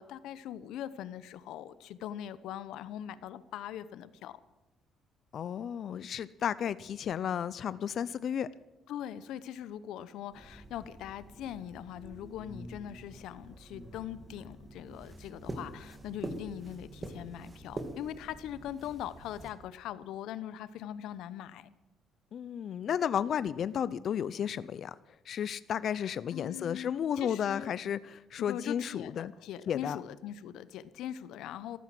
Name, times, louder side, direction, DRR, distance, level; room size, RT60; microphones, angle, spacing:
voice 1, 0.0-4.4 8.9-21.7 26.0-27.7 28.4-31.8, left 10 dB, 80° left, 16 dB, 0.9 m, -41 dB
voice 2, 5.3-8.5 22.3-24.9 25.3-29.3 29.7-30.0, left 8 dB, 55° left, 17 dB, 0.5 m, -33 dB
sound 1, 10.3-19.5, right 2 dB, 20° right, 2.2 m, -45 dB
13.5 x 13.0 x 7.7 m, 0.99 s
cardioid pair, 110°, 0 cm